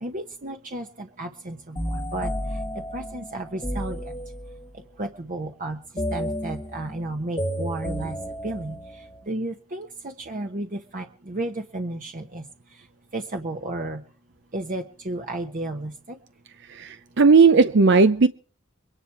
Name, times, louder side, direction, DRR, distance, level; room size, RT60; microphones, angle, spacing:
voice 1, 0.0-2.3 2.9-4.0 5.0-5.8 6.1-8.2 8.4-8.8 9.3-9.9 10.3-12.4 13.1-14.0 14.5-16.2, right 2 dB, 40° right, 1.1 m, -32 dB
sound 1, 1.8-4.7 6.0-9.3, equal, 20° left, 1.5 m, -32 dB
voice 2, 16.8-18.3, right 4 dB, 55° right, 0.6 m, -16 dB
23.0 x 10.0 x 4.7 m
head